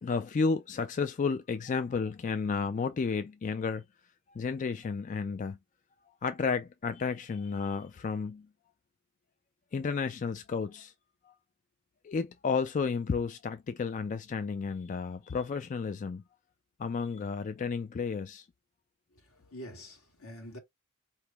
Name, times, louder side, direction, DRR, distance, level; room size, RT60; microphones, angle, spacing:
voice 1, 0.0-3.8 4.3-5.6 6.2-8.5 9.7-10.9 11.3-11.4 12.0-16.2 16.8-18.5, left 5 dB, 35° left, 0.3 m, -32 dB
voice 2, 19.1-20.6, equal, 80° left, 1.7 m, -46 dB
4.3 x 3.0 x 3.3 m
head